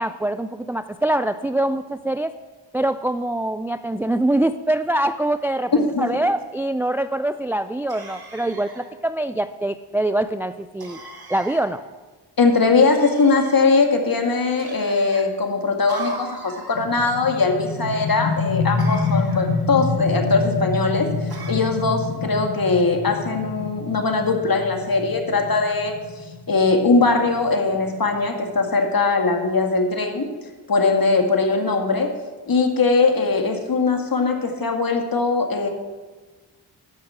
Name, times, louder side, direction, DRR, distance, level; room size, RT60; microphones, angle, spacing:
voice 1, 0.0-2.3 2.7-11.0 11.3-11.8, right 1 dB, 5° right, 12 dB, 0.3 m, -24 dB
voice 2, 5.7-6.1 12.4-30.3 30.7-32.1 32.5-35.7, left 3 dB, 45° left, 4 dB, 2.0 m, -20 dB
sound 1, 7.9-8.9 10.8-11.7 12.9-13.7 14.6-15.3 15.9-16.9 18.8-19.6 21.3-21.5, right 3 dB, 50° right, 2.1 m, -38 dB
sound 2, 16.7-28.2, left 4 dB, 80° left, 2.0 m, -27 dB
12.5 x 5.9 x 7.5 m, 1.3 s
supercardioid pair, 45°, 47 cm